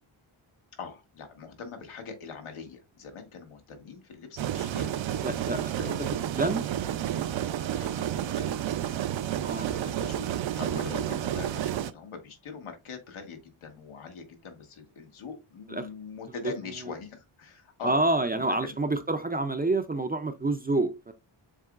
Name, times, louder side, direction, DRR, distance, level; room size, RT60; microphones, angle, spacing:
voice 1, 0.8-5.1 5.8-6.1 7.7-8.5 9.5-18.0 18.3-18.8, left 5 dB, 90° left, 1.4 m, -42 dB
sound 1, 4.4-11.9, right 11 dB, 70° right, 0.5 m, -30 dB
voice 2, 5.2-5.7 6.4-6.6 9.3-9.7 15.7-15.9 17.8-21.1, right 2 dB, 20° right, 0.4 m, -27 dB
7.3 x 3.0 x 2.4 m
wide cardioid pair, 130°, 48 cm